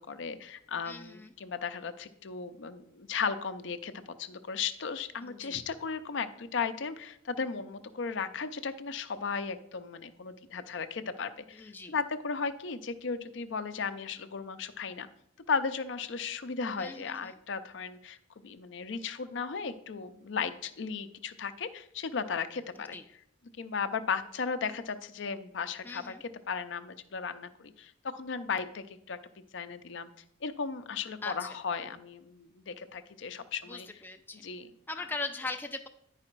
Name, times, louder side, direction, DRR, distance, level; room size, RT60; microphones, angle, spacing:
voice 1, 0.0-15.1 15.5-18.2 18.4-23.0 23.6-30.1 30.4-33.9 34.4-34.7 35.0-35.1, left 5 dB, 65° left, 10 dB, 0.5 m, -36 dB
voice 2, 0.8-1.3 5.2-5.6 11.6-11.9 16.8-17.3 22.9-23.0 25.8-26.2 31.2-31.5 33.7-34.4 34.9-35.9, left 3 dB, 10° left, 5 dB, 0.3 m, -40 dB
9.6 x 4.9 x 4.5 m, 0.73 s
head